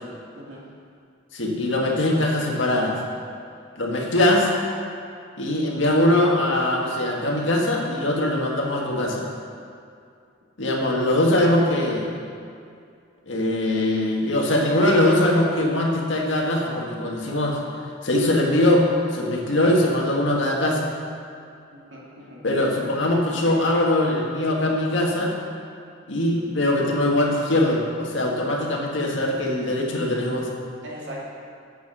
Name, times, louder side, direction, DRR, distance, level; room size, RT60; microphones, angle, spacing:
voice 1, 1.3-3.0 3.8-4.5 5.4-9.3 10.6-12.1 13.3-17.6 18.0-20.8 22.4-25.3 26.1-30.5, left 1 dB, 75° left, -1 dB, 1.8 m, -21 dB
voice 2, 21.7-22.4 30.8-31.2, equal, 70° right, -5 dB, 2.7 m, -40 dB
9.5 x 8.1 x 6.2 m, 2.4 s
head